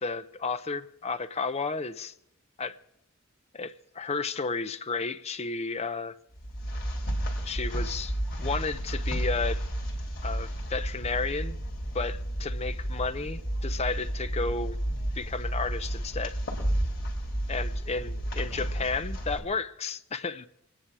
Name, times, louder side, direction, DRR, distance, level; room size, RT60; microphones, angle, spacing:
voice 1, 0.0-2.1 2.6-2.7 3.5-6.2 7.4-9.6 10.2-11.6 11.9-14.8 15.1-16.4 17.5-20.5, left 4 dB, 30° left, 0.6 m, -32 dB
sound 1, 6.3-19.4, right 1 dB, 50° left, 3.4 m, -32 dB
25.0 x 10.0 x 4.8 m
head